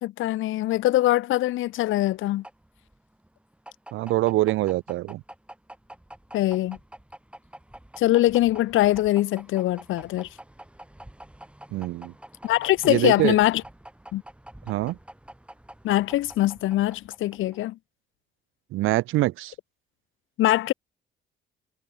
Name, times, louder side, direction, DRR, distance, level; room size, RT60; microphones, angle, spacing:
voice 1, 0.0-2.4 6.3-6.8 8.0-10.3 12.4-13.6 14.1-14.2 15.8-17.8 20.4-20.7, left 15 dB, 80° left, 0.9 m, -22 dB
sound 1, 1.7-17.7, right 1 dB, 5° right, 2.0 m, -47 dB
voice 2, 3.9-5.2 11.7-12.1 12.9-13.4 14.7-15.0 18.7-19.5, right 17 dB, 85° right, 0.6 m, -24 dB
cardioid pair, 90°, 20 cm